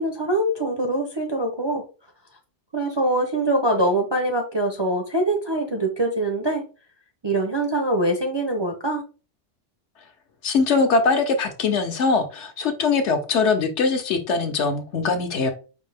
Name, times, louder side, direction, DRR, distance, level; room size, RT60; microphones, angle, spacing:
voice 1, 0.0-1.8 2.7-6.6 7.2-9.0, right 1 dB, 35° right, 0.4 m, -23 dB
voice 2, 10.4-15.5, left 4 dB, 70° left, 1.1 m, -22 dB
5.1 x 2.7 x 3.3 m
omnidirectional pair, 1.3 m